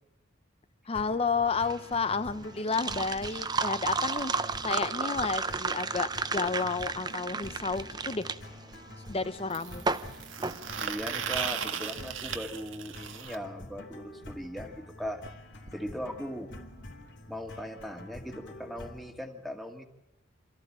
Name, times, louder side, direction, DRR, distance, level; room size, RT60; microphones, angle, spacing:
sound 1, 0.9-19.1, left 1 dB, 60° left, 3.1 m, -47 dB
voice 1, 0.9-4.3 4.6-8.2 9.1-9.8, left 4 dB, 30° left, 14 dB, 0.7 m, -31 dB
sound 2, 1.5-11.3, right 4 dB, 20° right, 0.7 m, -33 dB
sound 3, 7.5-7.6 9.5-13.4 15.3-15.4 15.7-15.8 16.0-16.2 17.1-17.2, right 7 dB, 80° right, 1.6 m, -36 dB
voice 2, 10.8-15.2 15.7-16.5 17.3-19.8, equal, ahead, 4 dB, 2.1 m, -39 dB
27.0 x 14.0 x 8.8 m, 0.92 s
head